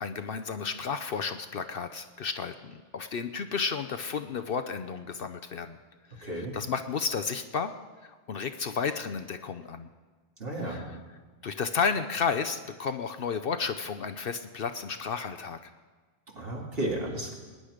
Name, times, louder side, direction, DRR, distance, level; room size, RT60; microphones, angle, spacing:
voice 1, 0.0-5.8 6.2-7.7 8.0-9.9 10.6-11.0 11.4-15.7, left 5 dB, 60° left, 9 dB, 0.8 m, -32 dB
voice 2, 6.2-6.5 10.4-10.8 16.3-17.3, right 1 dB, 55° right, -2 dB, 2.7 m, -33 dB
21.0 x 10.0 x 5.0 m, 1.4 s
omnidirectional pair, 1.2 m